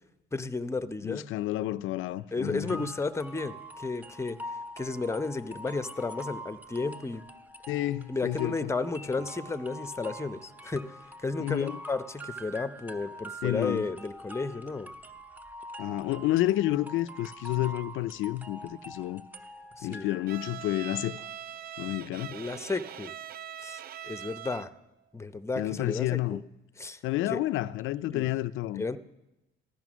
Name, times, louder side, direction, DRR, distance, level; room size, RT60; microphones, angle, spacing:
voice 1, 0.3-1.3 2.3-4.4 4.8-7.2 8.1-10.9 11.2-14.9 19.8-20.1 22.3-23.1 23.6-24.7 25.1-26.4 26.8-27.0 27.3-27.4 28.1-28.3 28.7-29.0, left 3 dB, 15° left, 0.7 m, -33 dB
voice 2, 1.0-2.9 7.7-8.7 11.4-11.8 13.4-13.9 15.8-19.3 19.8-21.2 21.8-22.4 25.6-26.4 27.0-28.8, left 15 dB, 90° left, 0.5 m, -30 dB
sound 1, 2.7-20.6, equal, 10° right, 1.0 m, -44 dB
Bowed string instrument, 20.3-24.8, right 10 dB, 50° right, 0.4 m, -42 dB
15.0 x 12.5 x 6.2 m
cardioid pair, 90°, 20 cm